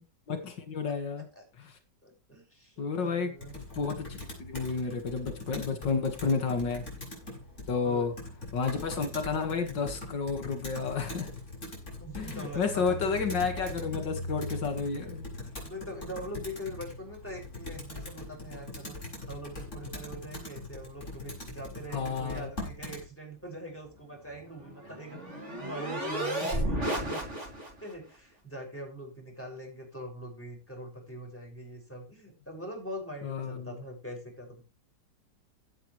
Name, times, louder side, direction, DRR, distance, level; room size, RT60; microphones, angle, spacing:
voice 1, 0.3-1.3 1.6-1.8 2.8-6.8 7.7-8.1 8.5-11.3 12.1-15.3 21.9-22.5 33.2-33.8, left 5 dB, 85° left, 6 dB, 2.6 m, -31 dB
voice 2, 2.0-3.5 7.8-8.1 12.0-13.2 14.2-14.3 15.6-27.5 27.8-34.6, equal, 5° left, 0 dB, 6.3 m, -43 dB
Computer keyboard, 3.4-23.0, left 2 dB, 40° left, 6.8 m, -41 dB
sound 1, 24.3-27.9, right 1 dB, 40° right, 3.7 m, -33 dB
16.5 x 8.4 x 3.2 m, 0.29 s
omnidirectional pair, 1.9 m